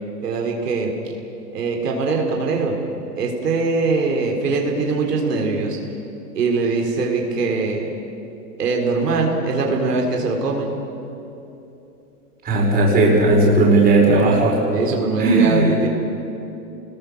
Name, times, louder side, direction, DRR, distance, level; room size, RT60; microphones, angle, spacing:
voice 1, 0.2-0.9 1.5-2.7 3.2-5.8 6.4-7.9 8.6-10.8 14.7-15.9, right 3 dB, 80° right, 1 dB, 4.1 m, -22 dB
voice 2, 12.4-14.6 15.2-15.7, right 2 dB, 20° right, -2 dB, 5.1 m, -16 dB
27.5 x 20.5 x 6.5 m, 2.9 s
hypercardioid pair, 145°, 47 cm